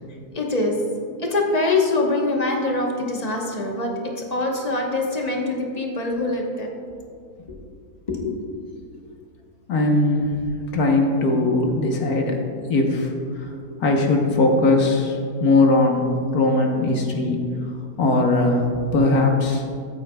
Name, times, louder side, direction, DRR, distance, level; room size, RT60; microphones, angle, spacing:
voice 1, 0.3-0.7 1.2-6.7 7.5-7.6 8.1-8.4, left 2 dB, 30° left, 0 dB, 1.1 m, -24 dB
voice 2, 9.7-10.4 10.7-12.4 12.7-13.5 13.8-16.1 16.3-17.4 18.0-19.6, left 2 dB, 70° left, 2 dB, 1.5 m, -19 dB
13.5 x 8.2 x 2.3 m, 2.3 s
omnidirectional pair, 1.6 m